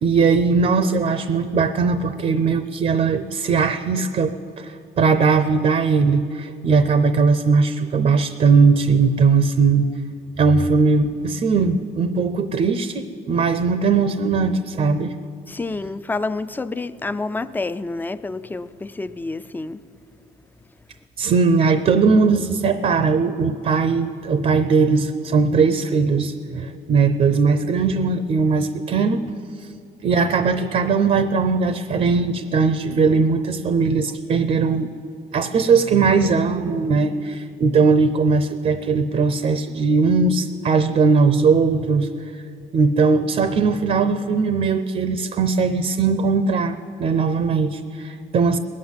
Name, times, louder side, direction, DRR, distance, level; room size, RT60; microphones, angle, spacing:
voice 1, 0.0-9.9 10.4-15.1 21.2-29.3 30.0-34.9 35.3-42.1 42.7-48.6, right 4 dB, 45° right, 0.7 m, -19 dB
voice 2, 15.5-19.8, left 3 dB, 10° left, 0.4 m, -28 dB
19.5 x 7.5 x 9.6 m
cardioid pair, 110°, 17 cm